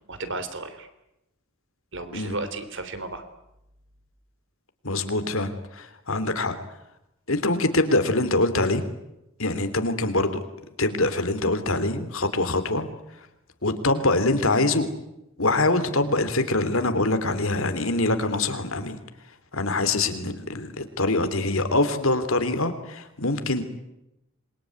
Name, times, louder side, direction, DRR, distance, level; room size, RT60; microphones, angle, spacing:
voice 1, 0.1-0.9 1.9-3.2, right 3 dB, 55° right, 10 dB, 3.4 m, -34 dB
voice 2, 4.8-6.6 7.3-8.8 9.4-10.4 10.8-12.9 13.6-14.9 15.4-19.0 19.5-23.6, left 2 dB, 65° left, 10 dB, 3.1 m, -24 dB
27.0 x 22.5 x 9.6 m, 0.88 s
head